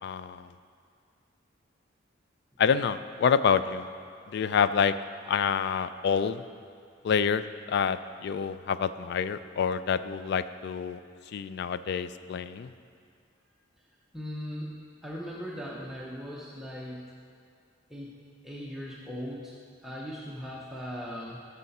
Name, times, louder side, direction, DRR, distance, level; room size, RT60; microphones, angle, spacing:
voice 1, 0.0-0.5 2.6-3.9 4.3-5.0 5.2-6.4 7.0-11.0 11.3-12.7, left 7 dB, 60° left, 13 dB, 0.3 m, -27 dB
voice 2, 14.1-14.8 15.0-17.1 17.9-18.1 18.4-19.5 19.8-21.4, equal, ahead, -5 dB, 0.7 m, -38 dB
12.0 x 5.6 x 4.2 m, 2.4 s
head